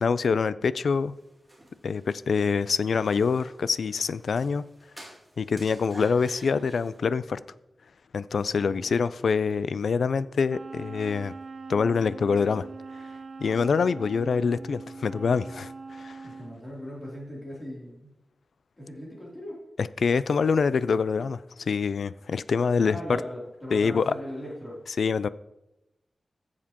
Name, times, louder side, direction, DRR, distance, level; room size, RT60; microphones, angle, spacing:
voice 1, 0.0-1.1 1.8-4.6 5.4-7.4 8.1-11.3 11.7-12.7 13.4-16.2 20.0-23.0 23.7-24.1 25.0-25.3, left 5 dB, 85° left, 0.3 m, -25 dB
sound 1, 0.9-7.1, right 1 dB, 5° right, 2.3 m, -51 dB
voice 2, 8.6-8.9 16.2-18.1 18.8-19.6 22.8-24.8, equal, 20° left, 3.0 m, -39 dB
Wind instrument woodwind instrument, 10.5-16.6, right 4 dB, 50° right, 0.5 m, -42 dB
15.0 x 7.3 x 2.9 m
wide cardioid pair, 135°, 0 cm